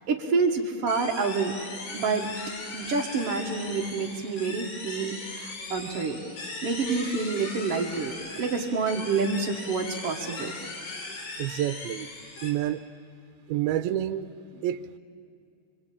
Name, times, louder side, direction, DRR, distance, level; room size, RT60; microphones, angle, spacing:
voice 1, 0.1-1.5 1.9-2.4 2.7-6.2 6.6-10.5, right 4 dB, 50° right, -2 dB, 2.1 m, -28 dB
sound 1, 0.9-12.5, left 3 dB, 85° left, 5.8 m, -39 dB
voice 2, 11.4-12.1 12.4-12.8 13.5-14.3 14.6-15.0, right 12 dB, 80° right, 8 dB, 2.6 m, -28 dB
27.0 x 25.5 x 8.7 m, 2.5 s
omnidirectional pair, 4.4 m